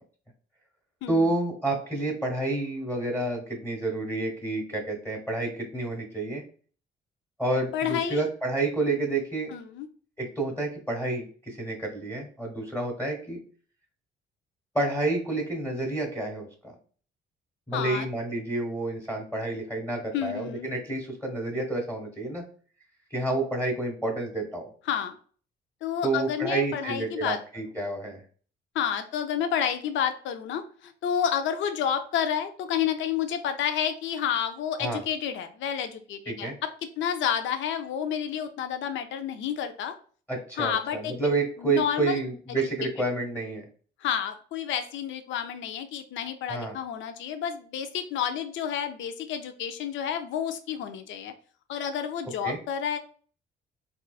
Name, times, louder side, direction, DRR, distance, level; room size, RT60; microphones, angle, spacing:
voice 1, 1.1-6.4 7.4-9.5 10.2-13.4 14.7-16.7 17.7-22.4 23.1-24.7 26.0-28.2 34.8-35.0 36.3-36.5 40.3-43.6 46.5-46.8 52.4-52.6, right 2 dB, 10° left, 0 dB, 1.2 m, -29 dB
voice 2, 7.7-8.3 9.5-9.9 17.7-18.1 20.1-20.7 24.9-25.2 25.8-27.4 28.7-36.7 37.0-39.9 40.6-42.2 42.5-42.6 44.0-51.3 51.7-53.0, left 8 dB, 70° left, 8 dB, 0.5 m, -30 dB
3.7 x 2.4 x 2.3 m, 0.42 s
cardioid pair, 90°, 20 cm